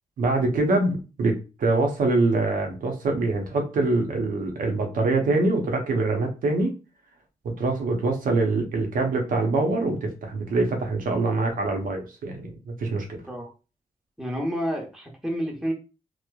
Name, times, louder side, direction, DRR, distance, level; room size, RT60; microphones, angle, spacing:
voice 1, 0.2-6.7 7.4-13.2, right 2 dB, 85° right, 4 dB, 0.7 m, -24 dB
voice 2, 14.2-15.7, equal, 5° right, -1 dB, 0.9 m, -29 dB
3.0 x 2.0 x 2.3 m, 0.32 s
cardioid pair, 70°, 14 cm